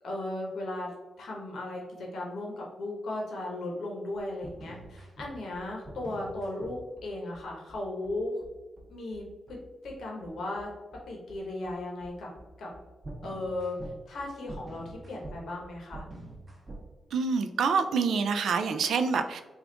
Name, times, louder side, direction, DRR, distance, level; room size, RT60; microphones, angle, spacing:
voice 1, 0.0-0.9 1.2-8.4 8.9-9.6 9.8-10.7 11.1-12.3 12.6-12.7 13.2-16.0, left 2 dB, 80° left, -1 dB, 0.8 m, -36 dB
sound 1, 4.1-16.9, right 1 dB, 25° right, 0.8 m, -46 dB
voice 2, 17.1-19.4, right 5 dB, 85° right, 8 dB, 0.3 m, -26 dB
3.5 x 2.3 x 3.8 m, 1.1 s
wide cardioid pair, 125°, 0 cm